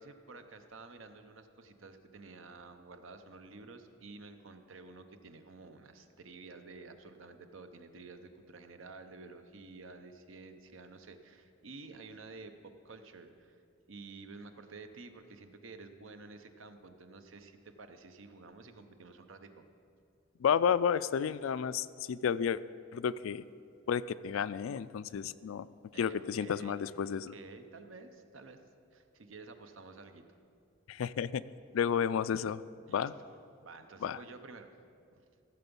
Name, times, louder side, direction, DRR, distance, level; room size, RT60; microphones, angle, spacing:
voice 1, 0.0-12.5 12.8-13.6 13.9-19.7 25.9-26.8 27.0-28.6 28.9-30.4 32.9-34.7 35.1-35.2, right 3 dB, 80° right, 8 dB, 0.8 m, -51 dB
voice 2, 20.4-22.6 22.9-23.4 23.9-25.7 26.0-27.3 30.9-31.4 31.7-32.6 32.9-33.1 34.0-34.2, left 7 dB, 90° left, 16 dB, 0.3 m, -31 dB
15.0 x 7.0 x 5.4 m, 2.4 s
head